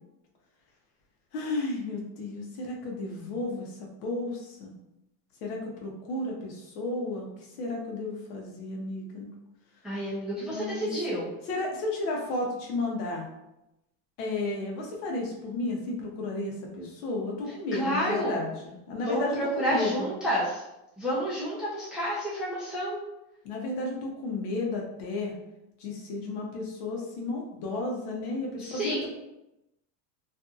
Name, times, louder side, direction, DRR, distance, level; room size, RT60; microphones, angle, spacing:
voice 1, 1.3-4.7 5.4-9.3 10.5-10.9 11.5-13.2 14.2-20.1 23.4-25.3 25.8-29.1, left 2 dB, 65° left, 0 dB, 0.9 m, -33 dB
voice 2, 9.8-11.3 17.7-18.4 19.0-20.6 21.0-23.0 28.6-29.1, equal, ahead, -8 dB, 0.5 m, -30 dB
2.6 x 2.6 x 2.3 m, 0.90 s
supercardioid pair, 140°, 46 cm